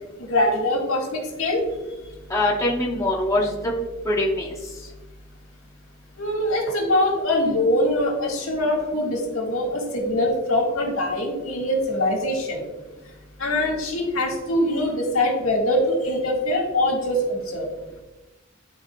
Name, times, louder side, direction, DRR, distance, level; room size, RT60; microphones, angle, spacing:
voice 1, 0.2-1.6 6.2-12.6 13.4-17.7, left 1 dB, 75° left, -1 dB, 1.7 m, -23 dB
voice 2, 2.3-3.7 4.1-4.5, left 1 dB, 15° left, -4 dB, 0.9 m, -23 dB
11.5 x 3.9 x 2.3 m, 1.1 s
head